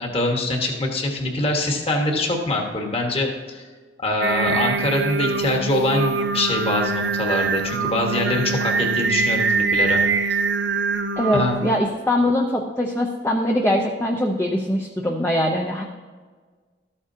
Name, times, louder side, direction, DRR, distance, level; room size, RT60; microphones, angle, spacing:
voice 1, 0.0-3.6 4.0-10.0 11.3-11.6, left 2 dB, 30° left, 1 dB, 1.4 m, -24 dB
Singing, 4.2-11.8, right 4 dB, 80° right, 0.6 m, -23 dB
voice 2, 11.2-15.8, left 1 dB, 15° left, 0 dB, 0.6 m, -22 dB
13.0 x 8.5 x 2.8 m, 1.4 s
head